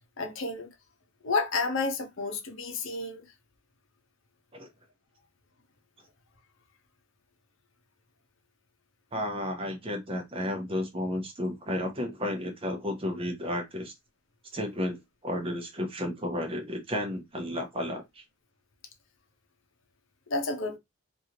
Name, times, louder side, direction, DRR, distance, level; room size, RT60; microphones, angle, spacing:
voice 1, 0.2-0.7 1.2-3.3 20.3-20.8, left 3 dB, 65° left, 0.7 m, -30 dB
voice 2, 9.1-13.9 14.5-18.2, left 1 dB, 25° right, 0.7 m, -32 dB
3.1 x 2.6 x 2.7 m
head